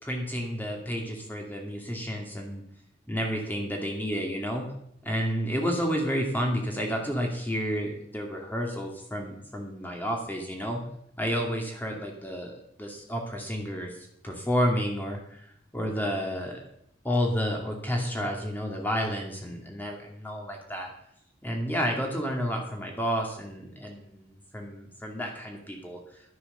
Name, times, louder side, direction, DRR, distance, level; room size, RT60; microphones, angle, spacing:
voice 1, 0.0-2.6 3.1-4.7 5.0-10.8 11.2-16.7 17.0-20.9 21.4-26.0, equal, 10° left, 1 dB, 2.4 m, -31 dB
12.0 x 9.7 x 6.7 m, 0.72 s
head